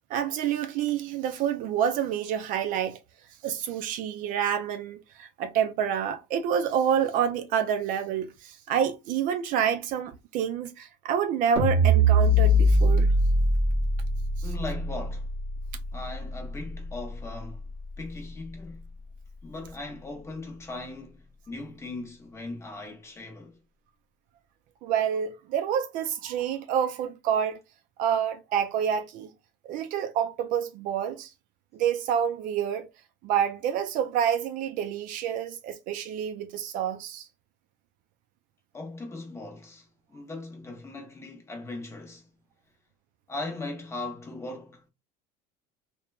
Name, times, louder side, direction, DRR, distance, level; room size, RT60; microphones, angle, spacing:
voice 1, 0.1-3.0 3.4-13.1 24.8-27.6 28.0-29.3 29.7-31.3 31.7-32.9 33.2-37.3, right 8 dB, 50° right, 0.4 m, -28 dB
sound 1, 11.6-17.9, equal, 25° right, 0.8 m, -23 dB
voice 2, 14.4-15.3 15.9-17.6 18.0-18.8 19.4-23.6 38.7-42.2 43.3-44.9, left 2 dB, 15° left, 0.6 m, -39 dB
2.9 x 2.2 x 2.2 m
cardioid pair, 150°, 18 cm